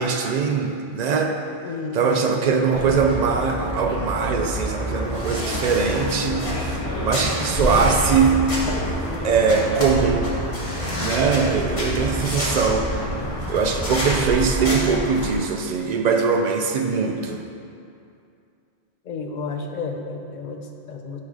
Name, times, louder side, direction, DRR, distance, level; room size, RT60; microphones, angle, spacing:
voice 1, 0.0-1.3 1.9-8.4 9.2-10.3 11.0-13.1 13.5-17.4, right 5 dB, 60° right, 4 dB, 0.4 m, -21 dB
voice 2, 1.6-2.3 19.0-21.2, left 3 dB, 55° left, 4 dB, 0.5 m, -32 dB
sound 1, 2.7-15.3, equal, 30° left, 1.0 m, -27 dB
6.4 x 3.8 x 4.8 m, 2.4 s
omnidirectional pair, 1.2 m